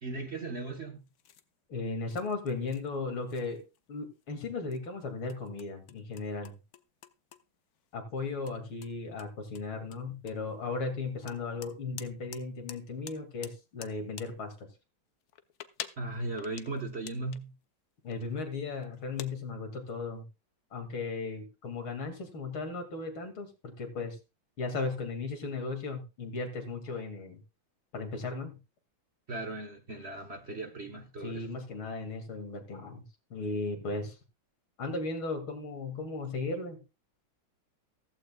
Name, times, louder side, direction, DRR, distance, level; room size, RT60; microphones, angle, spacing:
voice 1, 0.0-1.1 16.0-17.5 29.3-31.5, right 2 dB, 40° right, 1.2 m, -37 dB
sound 1, 1.0-1.5 2.1-3.0 3.3-3.9 4.2-4.4 4.7-7.4 7.7-7.9 8.4-8.5 8.8-10.6 11.3-12.4 12.7-12.8 13.1-14.3 15.2-17.5 18.1-18.4 18.8-19.3, left 9 dB, 60° left, 1.1 m, -47 dB
voice 2, 1.7-3.6 3.9-6.5 7.9-14.7 18.0-20.3 20.7-24.2 24.6-27.4 27.9-28.6 31.2-33.0 33.3-34.2 34.8-36.8, left 3 dB, 85° left, 3.2 m, -36 dB
14.5 x 14.5 x 2.3 m
omnidirectional pair, 2.2 m